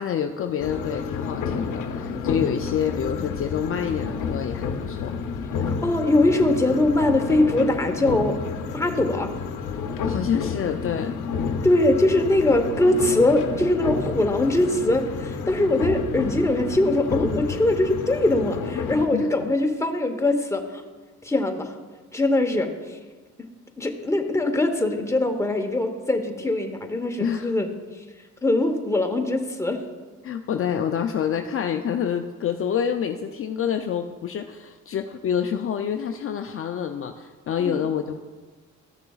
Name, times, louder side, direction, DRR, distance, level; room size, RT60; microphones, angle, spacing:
voice 1, 0.0-5.2 10.0-11.2 11.4-11.7 19.1-19.5 27.2-27.6 30.2-38.2, left 8 dB, 45° left, 5 dB, 0.5 m, -27 dB
sound 1, 0.6-19.1, left 5 dB, 85° left, 0.7 m, -30 dB
voice 2, 5.7-8.4 8.7-9.3 11.6-20.8 21.2-21.7 22.1-22.7 23.8-27.7 28.4-29.8 37.6-37.8, left 2 dB, 10° left, 4 dB, 0.9 m, -22 dB
13.5 x 6.6 x 2.4 m, 1.4 s
cardioid pair, 90°, 30 cm